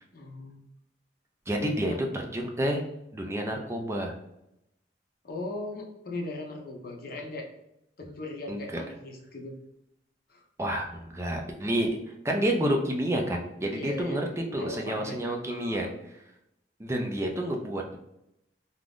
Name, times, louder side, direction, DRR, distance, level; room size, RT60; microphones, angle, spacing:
voice 1, 0.1-0.6 1.8-2.0 5.2-7.5 8.0-9.6 10.3-10.4 13.7-14.2 14.6-15.8, left 2 dB, 55° left, 0 dB, 0.6 m, -38 dB
voice 2, 1.5-2.8 3.1-4.1 8.5-8.8 10.6-11.9 12.2-15.9 16.8-18.0, right 1 dB, 15° right, 1 dB, 0.4 m, -29 dB
2.5 x 2.3 x 3.4 m, 0.83 s
head